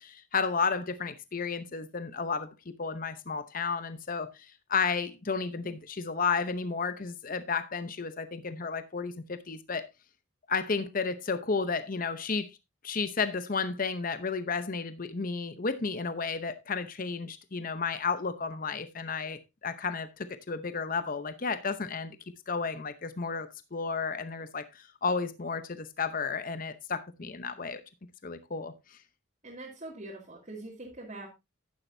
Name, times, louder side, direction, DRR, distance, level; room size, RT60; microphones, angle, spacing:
voice 1, 0.0-9.8 10.5-12.6 12.8-22.2 22.5-27.8 28.2-29.0, left 5 dB, 40° left, 0.8 m, -32 dB
voice 2, 29.4-31.3, right 2 dB, 35° right, 2.4 m, -43 dB
10.5 x 10.0 x 2.7 m
head